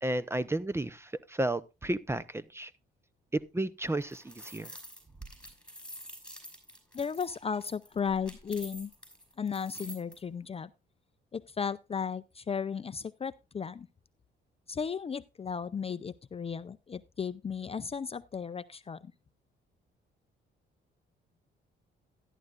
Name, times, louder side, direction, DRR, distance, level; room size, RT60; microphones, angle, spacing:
voice 1, 0.0-2.7 3.5-4.7, right 1 dB, 15° right, 0.7 m, -33 dB
sound 1, 3.8-10.1, equal, 5° left, 5.7 m, -48 dB
voice 2, 6.9-8.9 9.4-10.7 11.3-13.9 14.7-19.1, left 6 dB, 30° left, 0.5 m, -35 dB
13.5 x 11.0 x 2.5 m
cardioid pair, 90°, 20 cm